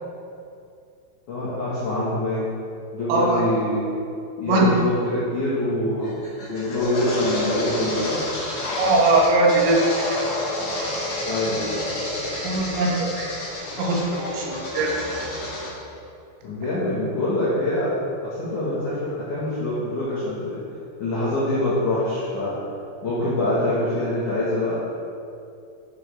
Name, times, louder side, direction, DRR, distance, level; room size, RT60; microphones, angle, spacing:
voice 1, 1.3-2.5 2.9-3.9 4.4-6.2 6.5-8.2 11.2-11.8 16.4-18.0 18.2-20.6 21.0-22.5 23.0-24.7, left 1 dB, 70° left, -9 dB, 1.9 m, -25 dB
voice 2, 3.1-3.4 4.5-4.7 8.8-9.8 10.2-10.4 12.4-13.3 13.8-15.2, right 2 dB, 80° right, -2 dB, 3.9 m, -21 dB
sound 1, 6.0-15.7, left 1 dB, 85° left, 1.2 m, -29 dB
9.6 x 9.1 x 3.5 m, 2.5 s
omnidirectional pair, 6.0 m